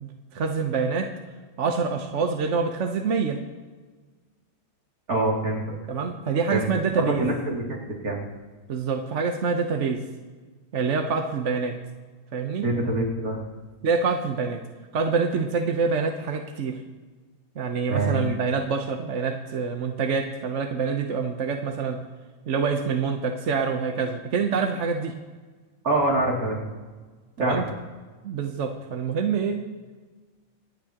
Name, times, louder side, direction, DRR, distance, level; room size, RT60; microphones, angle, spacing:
voice 1, 0.0-1.1 1.6-3.4 5.9-7.3 8.7-10.0 10.7-11.8 12.3-12.6 13.8-14.6 14.9-16.8 17.5-22.0 22.5-25.1 27.4-27.7 28.2-29.6, right 5 dB, 55° right, 4 dB, 1.2 m, -26 dB
voice 2, 5.1-5.7 6.5-6.7 7.0-8.2 12.6-13.4 17.9-18.4 25.8-26.6 27.4-27.6, right 2 dB, 80° right, -2 dB, 3.2 m, -25 dB
26.5 x 8.8 x 2.9 m, 1.4 s
omnidirectional pair, 1.5 m